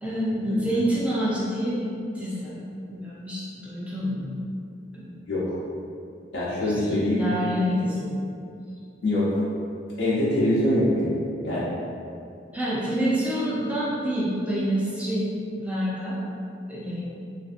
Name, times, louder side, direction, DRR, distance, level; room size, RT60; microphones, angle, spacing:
voice 1, 0.0-2.6 2.9-4.4 4.9-5.2 6.6-8.2 12.5-16.2 16.7-17.0, equal, 5° right, -8 dB, 0.6 m, -27 dB
voice 2, 6.3-7.2 9.0-9.4 10.0-11.1 11.4-11.7, left 1 dB, 85° left, -9 dB, 0.7 m, -23 dB
3.1 x 2.6 x 2.5 m, 2.5 s
head